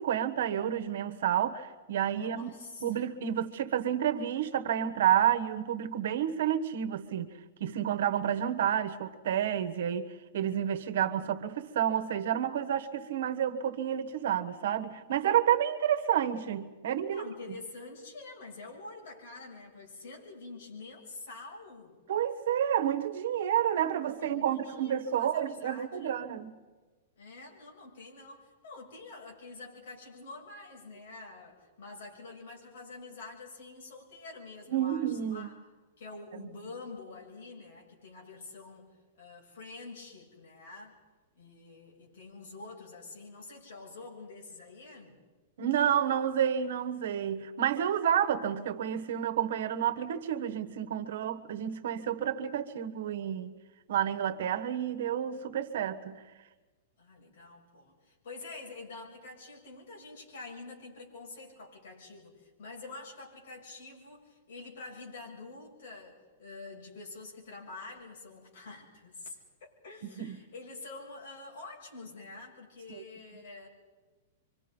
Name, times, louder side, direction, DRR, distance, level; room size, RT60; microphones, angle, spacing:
voice 1, 0.0-2.5 2.8-7.3 7.6-17.2 22.1-26.5 34.7-35.5 36.4-36.5 45.6-53.5 53.9-56.2 70.2-70.3 72.9-73.0, right 10 dB, 60° right, 1.3 m, -30 dB
voice 2, 2.1-3.0 8.5-8.6 17.1-22.0 24.2-26.3 27.2-35.5 36.0-38.9 39.2-41.0 41.3-45.2 57.0-73.7, left 3 dB, 60° left, 7.5 m, -47 dB
27.5 x 25.0 x 5.4 m
supercardioid pair, 175°, 0 cm